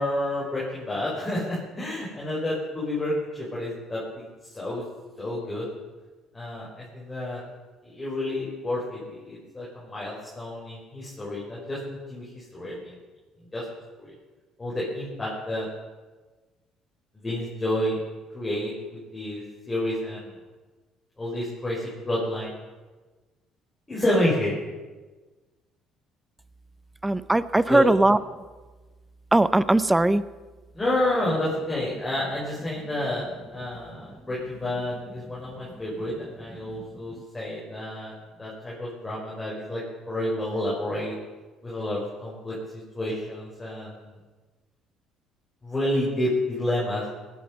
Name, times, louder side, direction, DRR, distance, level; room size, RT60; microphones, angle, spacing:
voice 1, 0.0-4.8 5.2-5.7 6.3-7.4 7.8-12.9 13.5-13.6 14.0-14.1 14.6-15.7 17.1-18.0 18.3-20.3 21.2-22.5 23.9-24.5 27.7-27.9 30.7-33.2 33.5-41.1 41.6-44.1 45.6-47.1, left 1 dB, 20° left, -6 dB, 6.0 m, -29 dB
voice 2, 27.0-28.2 29.3-30.2, right 2 dB, 15° right, 17 dB, 0.7 m, -19 dB
19.0 x 10.0 x 5.5 m, 1.3 s
hypercardioid pair, 65°, 0 cm